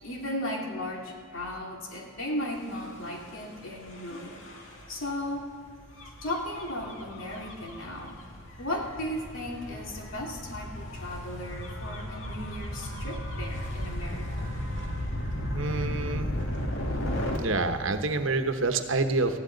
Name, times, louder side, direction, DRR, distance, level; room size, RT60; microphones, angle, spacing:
voice 1, 0.0-4.4 4.9-5.5 6.2-8.2 8.6-14.5, left 1 dB, 85° left, -1 dB, 2.6 m, -36 dB
Gull seagull / Waves surf / Siren, 2.6-17.4, left 1 dB, 70° left, 2.1 m, -35 dB
voice 2, 15.5-16.3 17.4-19.4, right 3 dB, 75° right, 7 dB, 1.0 m, -27 dB
19.5 x 14.5 x 3.9 m, 2.4 s
head